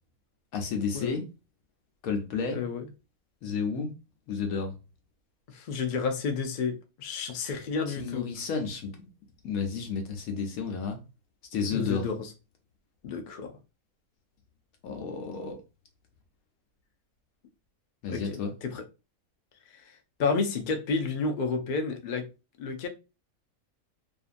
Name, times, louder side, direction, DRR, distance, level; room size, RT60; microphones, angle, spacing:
voice 1, 0.5-1.2 2.0-2.6 3.4-3.9 4.3-4.7 7.9-9.1 9.4-11.0 11.5-12.0 14.8-15.6 18.0-18.5, left 5 dB, 90° left, 1.2 m, -31 dB
voice 2, 2.5-2.9 5.5-8.3 11.7-12.3 13.0-13.5 18.1-18.8 19.7-19.9 20.2-22.3 22.6-22.9, left 4 dB, 65° left, 0.5 m, -31 dB
2.6 x 2.6 x 2.4 m
omnidirectional pair, 1.5 m